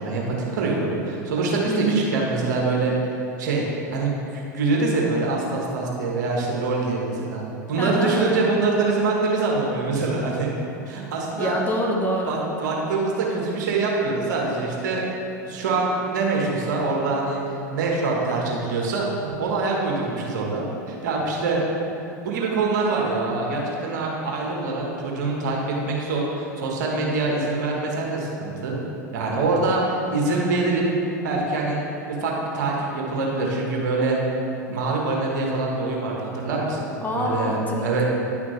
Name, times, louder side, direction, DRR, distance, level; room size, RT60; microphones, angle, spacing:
voice 1, 0.0-2.9 3.4-3.7 3.9-7.4 7.7-10.5 10.9-11.6 12.3-15.0 15.4-17.4 17.7-20.6 20.9-21.6 22.2-28.8 29.1-29.8 30.1-30.8 31.2-31.8 32.2-34.2 34.7-36.9 37.1-38.1, right 3 dB, 65° right, -2 dB, 1.5 m, -24 dB
voice 2, 1.7-2.0 7.8-8.4 11.4-12.4 37.0-37.7, equal, 15° left, -1 dB, 1.2 m, -25 dB
9.8 x 5.8 x 3.2 m, 2.8 s
hypercardioid pair, 85°, 10 cm